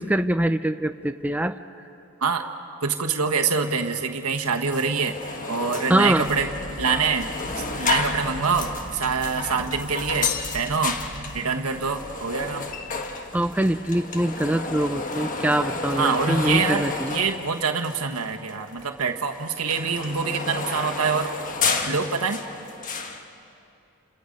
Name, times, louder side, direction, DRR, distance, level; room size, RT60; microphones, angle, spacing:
voice 1, 0.0-1.6 5.9-6.3 13.3-17.2, right 1 dB, 5° right, 9 dB, 0.5 m, -23 dB
voice 2, 2.8-6.5 6.8-7.3 7.6-11.0 11.3-12.7 16.0-21.4 21.8-22.4, right 5 dB, 80° right, 3 dB, 1.4 m, -25 dB
sound 1, 4.3-4.4 4.7-18.2 18.5-23.2, left 4 dB, 35° left, 1.5 m, -31 dB
sound 2, 6.2-11.4, right 1 dB, 45° right, 1.6 m, -39 dB
30.0 x 28.0 x 5.3 m, 2.8 s
head